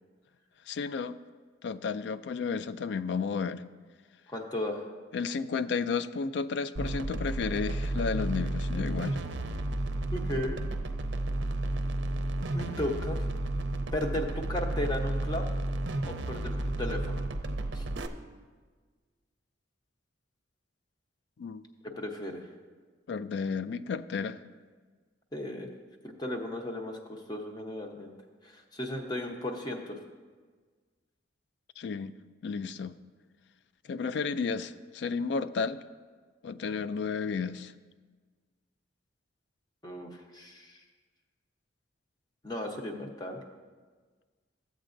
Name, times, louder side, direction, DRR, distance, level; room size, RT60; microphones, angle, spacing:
voice 1, 0.7-1.2 1.6-3.6 5.1-9.2 21.4-21.6 23.1-24.4 31.8-32.1 32.4-33.0 33.9-35.8 36.4-37.7, left 5 dB, 65° left, 13 dB, 0.3 m, -32 dB
voice 2, 4.3-4.8 10.1-10.6 12.5-13.2 13.9-15.5 16.0-17.2 17.7-17.8 22.0-22.4 25.3-25.7 26.0-28.1 28.4-29.9 39.8-40.7 42.4-43.4, left 1 dB, 20° left, 2 dB, 0.8 m, -35 dB
sound 1, 6.8-18.1, right 1 dB, 70° right, 0.5 m, -32 dB
14.5 x 8.0 x 2.6 m, 1.4 s
head